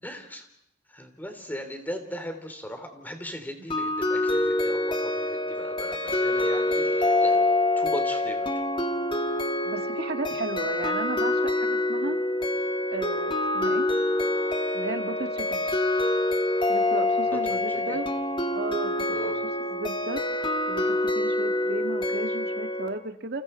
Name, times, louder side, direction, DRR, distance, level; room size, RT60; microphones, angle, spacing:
voice 1, 0.0-0.5 0.9-7.4 7.8-8.7 17.2-18.0 19.1-19.4, equal, 10° left, 6 dB, 3.2 m, -38 dB
sound 1, 3.7-22.9, left 2 dB, 25° left, 1.7 m, -26 dB
voice 2, 9.6-12.2 12.9-13.9 14.7-15.7 16.7-18.1 18.5-19.3 19.7-20.2 20.7-23.4, right 2 dB, 60° right, 6 dB, 1.9 m, -35 dB
29.5 x 28.0 x 4.5 m, 0.76 s
head